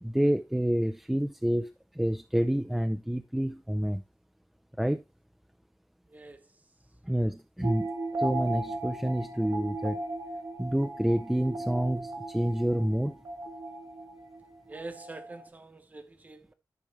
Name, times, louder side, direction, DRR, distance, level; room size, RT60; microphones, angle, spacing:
voice 1, 0.0-4.0 4.8-5.0 7.0-7.9 8.2-10.0 10.6-13.2, equal, 5° right, 0.5 m, -28 dB
voice 2, 6.1-6.4 14.7-16.5, right 2 dB, 25° right, 1.1 m, -45 dB
sound 1, 7.6-15.5, right 2 dB, 75° right, 1.8 m, -37 dB
12.0 x 5.2 x 3.1 m
wide cardioid pair, 145°, 6 cm